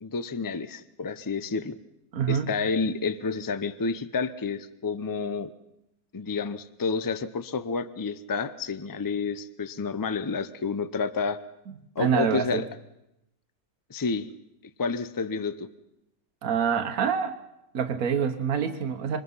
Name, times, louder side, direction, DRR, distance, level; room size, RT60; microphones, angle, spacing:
voice 1, 0.0-1.8 2.3-5.5 6.1-11.4 12.0-12.7 13.9-14.3 14.8-15.7, left 4 dB, 35° left, 13 dB, 0.3 m, -30 dB
voice 2, 2.1-2.5 12.0-12.6 16.4-17.4 17.7-19.2, right 7 dB, 65° right, 5 dB, 1.5 m, -26 dB
25.5 x 21.0 x 5.6 m, 0.85 s
omnidirectional pair, 1.6 m